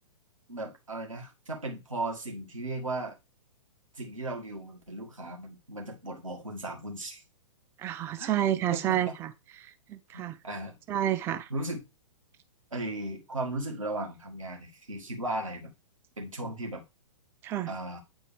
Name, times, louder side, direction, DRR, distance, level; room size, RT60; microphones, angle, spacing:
voice 1, 0.5-3.2 4.0-7.2 8.2-8.4 8.7-9.0 10.1-10.8 11.5-11.9 12.7-15.7 16.2-16.8 17.7-18.0, right 2 dB, 75° right, 1.8 m, -36 dB
voice 2, 7.8-9.3 9.6-10.4 10.9-11.5 17.4-17.7, right 11 dB, 15° right, 0.4 m, -29 dB
8.9 x 4.4 x 3.3 m
figure-of-eight pair, 110°, 17 cm